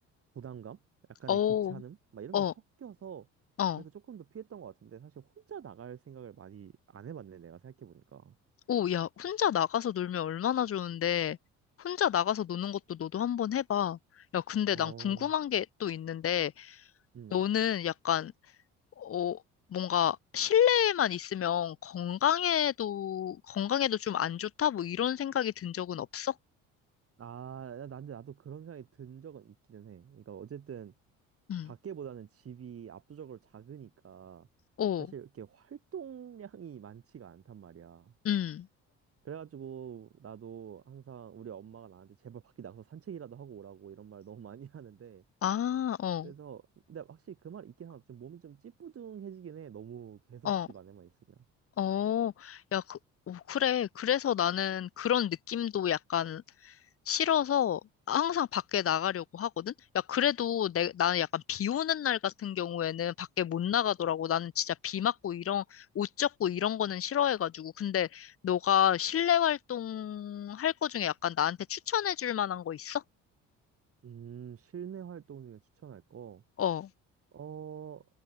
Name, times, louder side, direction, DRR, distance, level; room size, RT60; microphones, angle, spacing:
voice 1, 0.3-0.8 1.2-2.5 2.8-3.3 3.8-8.3 14.7-15.3 17.1-17.4 27.2-30.9 31.6-34.5 35.0-38.1 39.2-45.2 46.2-46.6 46.9-51.1 51.4-51.5 74.0-76.4 77.3-78.1, right 8 dB, 40° right, 1.7 m, -46 dB
voice 2, 1.3-1.8 2.3-2.5 3.6-3.8 8.7-11.4 11.8-14.0 14.3-16.8 17.3-18.3 19.0-19.4 19.7-26.3 31.5-31.7 34.8-35.1 38.2-38.7 45.4-46.3 50.4-50.7 51.8-53.0 53.3-56.7 57.1-57.8 58.1-73.0 76.6-76.9, left 10 dB, 40° left, 0.9 m, -30 dB
supercardioid pair, 65°, 34 cm